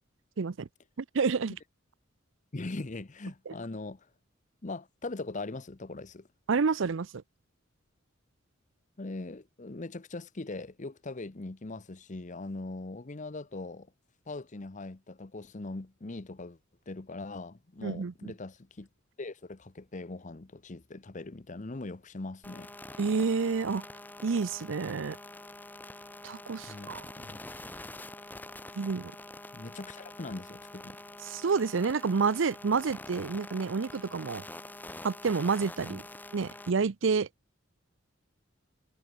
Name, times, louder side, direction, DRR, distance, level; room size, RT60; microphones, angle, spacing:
voice 1, 0.4-0.7 1.1-1.6 3.5-3.6 6.5-7.2 17.8-18.3 23.0-23.8 24.2-25.2 26.2-27.0 28.8-29.1 31.3-34.4 35.0-36.0 36.3-37.3, right 5 dB, 65° right, 0.5 m, -29 dB
voice 2, 2.5-4.1 4.6-6.3 9.0-13.9 14.3-16.6 16.9-18.9 19.2-22.7 26.7-27.4 29.5-31.0 35.9-36.0, left 2 dB, 40° left, 0.8 m, -41 dB
sound 1, 22.4-36.7, left 2 dB, 10° left, 1.1 m, -46 dB
head